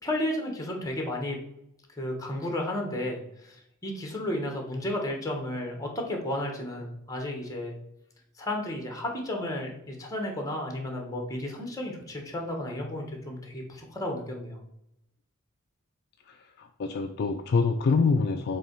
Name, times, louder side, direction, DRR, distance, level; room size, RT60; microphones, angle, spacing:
voice 1, 0.0-1.4 2.0-7.8 8.4-14.6, left 1 dB, 15° left, 2 dB, 1.3 m, -33 dB
voice 2, 16.2-18.6, left 4 dB, 50° left, 6 dB, 0.4 m, -26 dB
7.3 x 2.9 x 4.5 m, 0.80 s
head